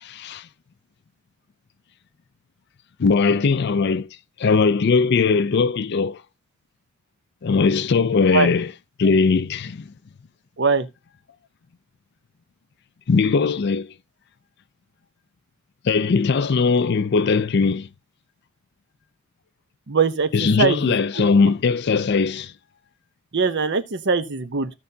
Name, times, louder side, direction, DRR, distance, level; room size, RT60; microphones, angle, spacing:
voice 1, 0.0-0.5 3.0-4.1 4.4-6.2 7.4-8.7 9.0-9.8 13.1-13.9 15.8-17.9 20.3-22.5, left 4 dB, 50° left, 0.4 m, -19 dB
voice 2, 19.9-21.5 23.3-24.7, right 5 dB, 55° right, 0.8 m, -22 dB
15.0 x 5.4 x 2.7 m
head